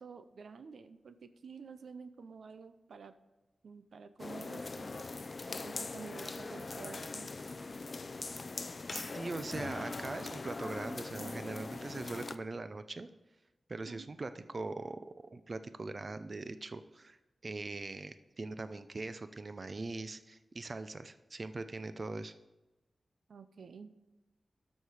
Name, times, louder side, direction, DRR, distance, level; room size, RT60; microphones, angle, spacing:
voice 1, 0.0-3.2 3.6-5.1 5.5-7.3 9.7-10.0 11.1-11.5 13.8-14.1 23.3-23.9, right 5 dB, 90° right, 11 dB, 0.5 m, -50 dB
sound 1, 4.2-12.4, left 3 dB, 45° left, 0.4 m, -41 dB
voice 2, 8.9-13.1 13.7-17.2 17.4-22.3, right 3 dB, 40° right, 11 dB, 0.5 m, -41 dB
12.5 x 6.4 x 4.9 m, 1.0 s
wide cardioid pair, 105°, 0 cm